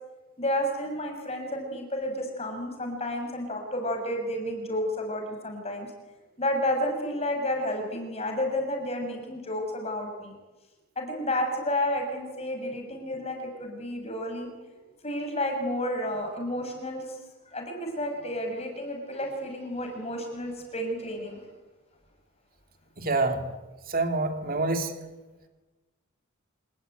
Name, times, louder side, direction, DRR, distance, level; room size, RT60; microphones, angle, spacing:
voice 1, 0.4-5.9 6.4-10.3 11.0-14.5 15.0-17.1 17.5-21.4, left 1 dB, 30° left, 3 dB, 6.3 m, -31 dB
voice 2, 23.0-23.4 23.9-24.9, right 3 dB, 40° right, 6 dB, 2.8 m, -26 dB
27.0 x 19.0 x 9.2 m, 1.2 s
head